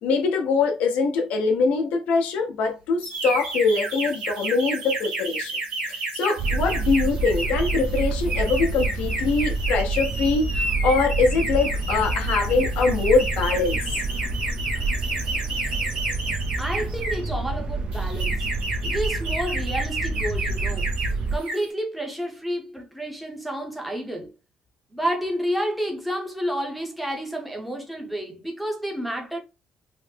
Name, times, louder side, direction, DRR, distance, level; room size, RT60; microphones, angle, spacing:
voice 1, 0.0-5.5 5.9-13.8, left 4 dB, 90° left, 0.8 m, -23 dB
sound 1, 3.0-17.3 17.9-21.1 21.4-21.7, right 2 dB, 80° right, 1.6 m, -31 dB
sound 2, 6.4-21.4, right 2 dB, 50° right, 0.6 m, -28 dB
voice 2, 16.6-18.5 18.8-21.0 21.3-24.3 24.9-29.4, equal, ahead, 0.7 m, -30 dB
3.2 x 2.0 x 3.3 m
cardioid pair, 125°, 2 cm